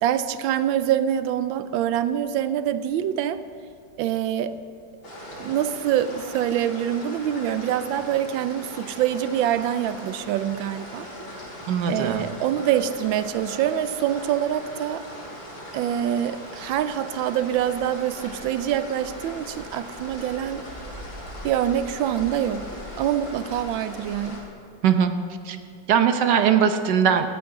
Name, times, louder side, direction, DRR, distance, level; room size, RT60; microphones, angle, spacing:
voice 1, 0.0-3.4 4.0-4.6 5.4-11.1 11.9-15.1 15.7-20.7 21.4-22.7 23.0-24.4, right 10 dB, 85° right, 12 dB, 1.4 m, -25 dB
sound 1, 5.0-24.4, equal, 90° left, 4.6 m, -39 dB
voice 2, 11.7-12.3 24.8-25.1 25.4-25.6 25.9-27.3, right 8 dB, 65° right, 8 dB, 1.4 m, -20 dB
17.5 x 13.0 x 3.8 m, 2.4 s
omnidirectional pair, 2.1 m